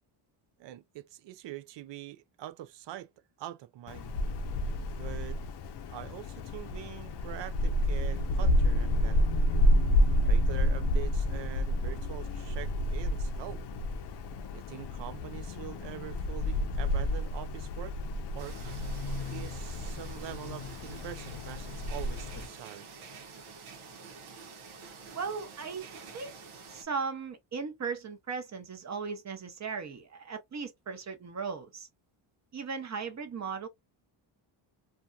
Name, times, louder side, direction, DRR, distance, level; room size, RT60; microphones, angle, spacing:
voice 1, 0.6-3.1 3.4-4.1 5.0-5.4 5.9-9.2 10.2-13.6 14.5-18.0 18.3-18.6 19.3-22.9, right 13 dB, 60° right, 0.5 m, -44 dB
Wind, 3.9-22.5, left 1 dB, 55° left, 0.6 m, -30 dB
sound 1, 18.4-26.8, right 5 dB, 80° right, 0.9 m, -48 dB
voice 2, 25.1-25.8 26.1-26.3 26.7-31.9 32.5-33.7, right 5 dB, 35° right, 0.8 m, -37 dB
2.7 x 2.3 x 2.3 m
cardioid pair, 110°, 49 cm